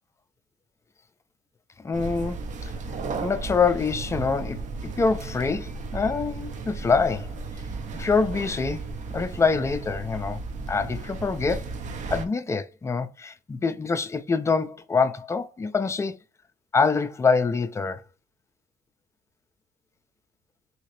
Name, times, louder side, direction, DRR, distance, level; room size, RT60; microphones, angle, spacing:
voice 1, 1.8-2.7 3.2-7.3 7.9-8.8 9.1-10.4 10.7-11.7 12.1-16.2 16.7-18.0, left 4 dB, 15° left, 0.3 m, -25 dB
sound 1, 1.9-12.3, right 3 dB, 45° right, 0.5 m, -35 dB
sound 2, 3.9-8.1, right 9 dB, 90° right, 0.6 m, -47 dB
2.8 x 2.8 x 3.1 m
cardioid pair, 110°, 17 cm